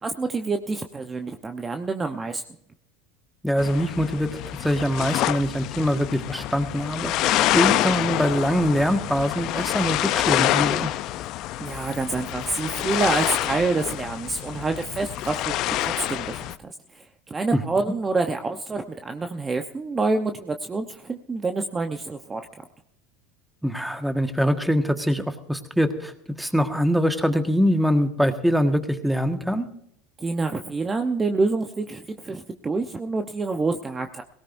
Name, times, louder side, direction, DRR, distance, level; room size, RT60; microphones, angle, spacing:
voice 1, 0.0-2.4 11.6-22.6 30.2-34.2, right 3 dB, 20° right, 6 dB, 0.9 m, -27 dB
voice 2, 3.4-10.9 17.5-17.6 23.6-29.7, equal, ahead, 7 dB, 1.6 m, -23 dB
sound 1, 3.6-16.6, left 14 dB, 55° left, 0.6 m, -27 dB
18.0 x 17.5 x 2.7 m, 0.74 s
hypercardioid pair, 100°, 0 cm